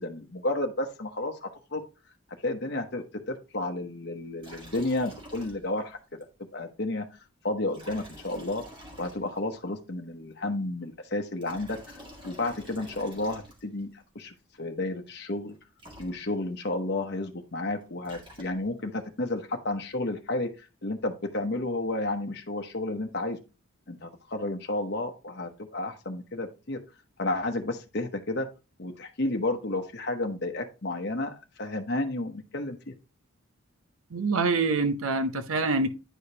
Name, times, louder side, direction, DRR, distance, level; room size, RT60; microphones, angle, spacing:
voice 1, 0.0-1.8 2.4-6.0 6.5-7.0 7.4-8.6 9.0-11.8 12.2-15.5 16.0-20.5 20.8-23.4 23.9-26.8 27.2-28.5 28.8-32.9, left 2 dB, 50° left, 0.9 m, -31 dB
Liquid, 4.4-5.9 6.2-6.3 7.7-9.6 11.2-13.9 15.5-15.6 15.8-16.6 17.8-18.9, equal, 25° right, 2.1 m, -48 dB
voice 2, 34.1-35.9, right 3 dB, 75° right, 0.7 m, -25 dB
9.9 x 5.0 x 2.8 m
head